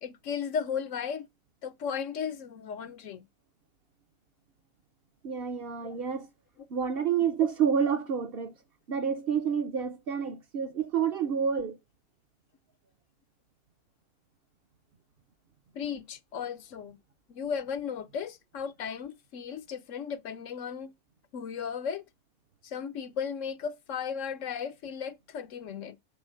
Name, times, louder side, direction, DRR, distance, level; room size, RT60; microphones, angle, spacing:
voice 1, 0.0-1.3 1.6-3.3 5.9-6.0 11.5-11.6 15.7-17.0 17.3-20.9 21.3-22.0 22.6-26.0, left 7 dB, 70° left, 1.1 m, -35 dB
voice 2, 5.2-6.3 6.7-8.5 8.9-11.8, right 7 dB, 50° right, 0.9 m, -29 dB
10.5 x 4.0 x 6.5 m
omnidirectional pair, 1.4 m